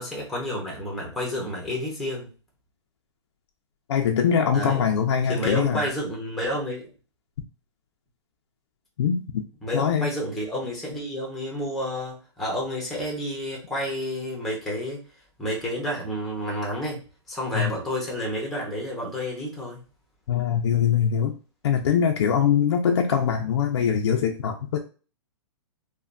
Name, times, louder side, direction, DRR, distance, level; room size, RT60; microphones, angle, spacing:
voice 1, 0.0-2.3 4.5-4.9 5.3-6.9 9.6-15.0 15.4-17.0 17.3-19.8, equal, ahead, -2 dB, 0.6 m, -30 dB
voice 2, 3.9-5.8 9.0-9.2 9.7-10.1 17.5-17.7 20.3-21.3 21.6-24.8, left 8 dB, 70° left, 3 dB, 0.5 m, -22 dB
3.2 x 2.2 x 2.5 m, 0.35 s
hypercardioid pair, 170°, 15 cm